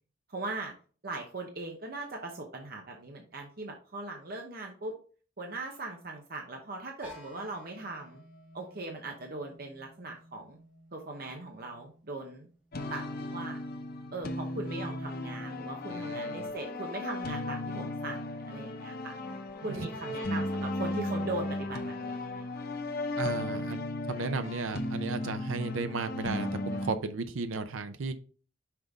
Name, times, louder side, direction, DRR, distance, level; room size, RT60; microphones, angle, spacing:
voice 1, 0.3-0.7 1.0-5.0 5.4-8.2 8.5-10.6 10.9-12.5 12.9-13.0 13.3-13.6 14.1-19.1 19.6-22.5, right 2 dB, 50° right, 2 dB, 0.9 m, -39 dB
sound 1, 7.0-12.8, left 1 dB, 5° right, 1.9 m, -55 dB
sound 2, 12.7-26.9, left 1 dB, 50° left, 0.7 m, -35 dB
voice 2, 15.9-16.5 19.7-19.9 23.2-23.8 24.1-28.1, right 4 dB, 80° right, 10 dB, 0.6 m, -35 dB
5.9 x 5.1 x 3.6 m, 0.40 s
head